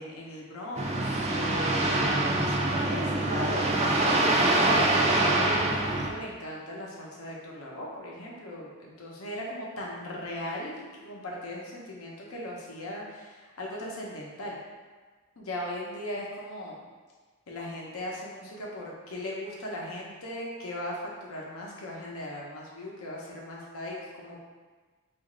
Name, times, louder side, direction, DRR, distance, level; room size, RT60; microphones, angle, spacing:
voice 1, 0.0-14.6 15.4-16.8 17.5-24.4, left 1 dB, 70° left, -3 dB, 0.7 m, -38 dB
sound 1, 0.8-6.1, right 2 dB, 30° right, 0.3 m, -25 dB
3.0 x 2.5 x 3.8 m, 1.4 s
head